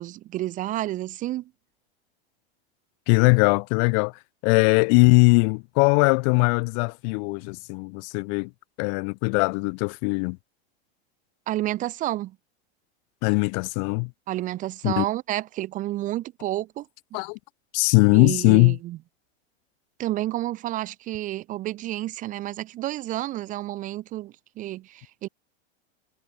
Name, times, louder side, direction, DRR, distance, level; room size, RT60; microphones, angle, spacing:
voice 1, 0.0-1.5 11.5-12.4 14.3-16.9 17.1-17.2 18.1-19.0 20.0-25.3, right 15 dB, 25° right, 0.7 m, -30 dB
voice 2, 3.1-4.1 4.4-8.5 8.8-10.4 13.2-14.1 14.8-15.0 17.1-17.4 17.7-18.8, left 40 dB or more, 40° left, 1.0 m, -20 dB
supercardioid pair, 155°, 33 cm